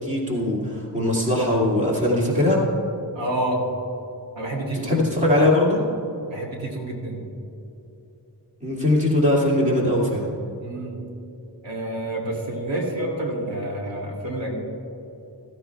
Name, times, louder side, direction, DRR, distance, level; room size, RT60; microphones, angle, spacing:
voice 1, 0.0-2.6 4.8-5.8 8.6-10.3, left 1 dB, 15° right, -4 dB, 2.4 m, -21 dB
voice 2, 3.1-3.6 4.4-5.0 6.3-7.2 10.6-11.0 11.6-14.6, right 1 dB, 85° right, -1 dB, 2.6 m, -28 dB
15.5 x 15.0 x 2.3 m, 2.9 s
wide cardioid pair, 150°, 44 cm